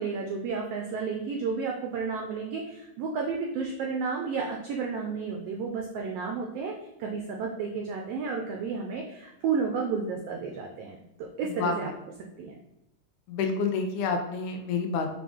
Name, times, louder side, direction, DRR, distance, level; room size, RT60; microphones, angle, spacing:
voice 1, 0.0-11.9 12.4-12.6, right 5 dB, 85° right, 1 dB, 1.4 m, -32 dB
voice 2, 11.4-11.8 13.3-15.1, left 4 dB, 80° left, 4 dB, 1.9 m, -28 dB
6.0 x 2.5 x 3.5 m, 0.86 s
omnidirectional pair, 3.4 m